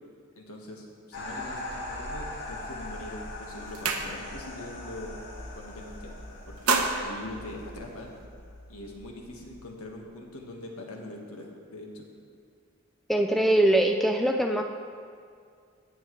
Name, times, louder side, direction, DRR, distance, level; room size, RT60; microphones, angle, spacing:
voice 1, 0.4-5.2 5.5-6.1 6.5-6.7 7.0-8.1 8.7-12.1, left 1 dB, 85° left, 0 dB, 1.7 m, -42 dB
sound 1, 1.1-10.1, left 1 dB, 55° left, 1.8 m, -41 dB
sound 2, 2.8-3.1 3.4-4.6 4.9-5.2 5.5-6.0 6.4-8.2, right 4 dB, 80° right, 0.9 m, -30 dB
voice 2, 13.1-14.6, right 1 dB, ahead, 4 dB, 0.3 m, -22 dB
18.5 x 7.3 x 3.2 m, 2.2 s
head